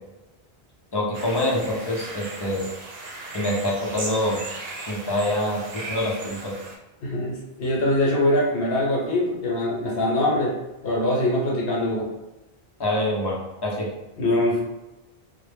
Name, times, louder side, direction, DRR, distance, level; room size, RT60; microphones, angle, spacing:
voice 1, 0.9-2.7 3.3-4.4 4.9-6.5 12.8-13.9, left 1 dB, 35° left, -3 dB, 0.4 m, -25 dB
sound 1, 1.1-6.8, right 2 dB, 75° right, 0.8 m, -37 dB
voice 2, 7.0-10.5 10.8-12.0 14.2-14.6, left 1 dB, 70° left, -4 dB, 0.9 m, -23 dB
2.0 x 2.0 x 3.2 m, 1.0 s
omnidirectional pair, 1.0 m